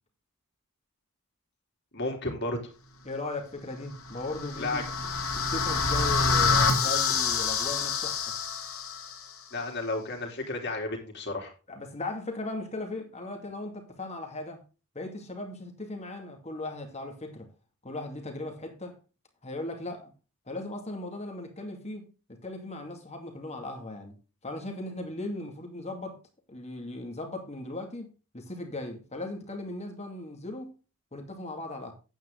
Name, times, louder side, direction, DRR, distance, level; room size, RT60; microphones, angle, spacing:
voice 1, 1.9-2.7 4.6-4.8 9.5-11.5, left 2 dB, 50° left, 3.4 m, -32 dB
voice 2, 3.0-8.3 11.7-14.6 14.9-17.5 17.8-19.0 19.4-20.1 20.5-24.1 24.4-26.2 26.5-30.7 31.1-31.9, left 2 dB, 30° left, 2.3 m, -38 dB
sound 1, 4.1-9.2, left 5 dB, 70° left, 2.5 m, -27 dB
9.3 x 9.1 x 3.8 m
head